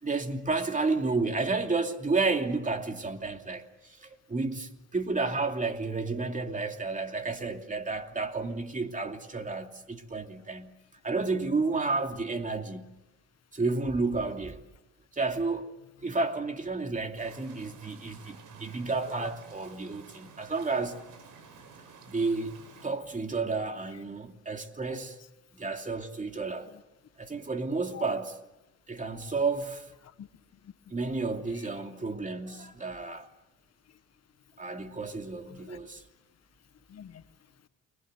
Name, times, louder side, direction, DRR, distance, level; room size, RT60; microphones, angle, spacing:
voice 1, 0.0-10.7 11.0-12.9 13.5-14.6 15.1-15.7 16.0-21.0 22.1-22.5 22.8-25.2 25.6-26.7 27.2-28.3 28.9-29.9 30.9-33.3 34.6-36.0, right 3 dB, 25° right, 2.8 m, -31 dB
sound 1, 17.2-22.9, right 5 dB, 85° right, 5.4 m, -52 dB
voice 2, 18.7-19.3 23.9-24.0 24.9-25.0 26.6-26.8 27.9-28.2 30.0-31.1 31.5-31.9 33.8-34.0 35.0-36.2 36.6-37.7, left 10 dB, 55° left, 1.3 m, -50 dB
30.0 x 21.5 x 8.1 m
cardioid pair, 90°, 30 cm